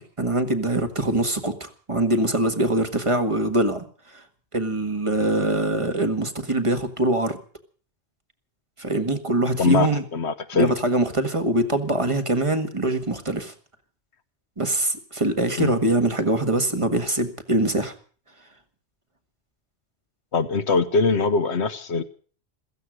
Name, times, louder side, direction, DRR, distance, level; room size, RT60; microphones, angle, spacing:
voice 1, 0.0-3.8 4.1-4.2 4.5-7.4 8.8-10.0 10.5-13.5 14.6-17.9, right 1 dB, 30° right, 7 dB, 1.7 m, -23 dB
voice 2, 9.6-10.7 15.6-15.7 20.3-22.0, left 4 dB, 75° left, 9 dB, 1.3 m, -22 dB
16.0 x 14.5 x 6.3 m, 0.42 s
omnidirectional pair, 1.1 m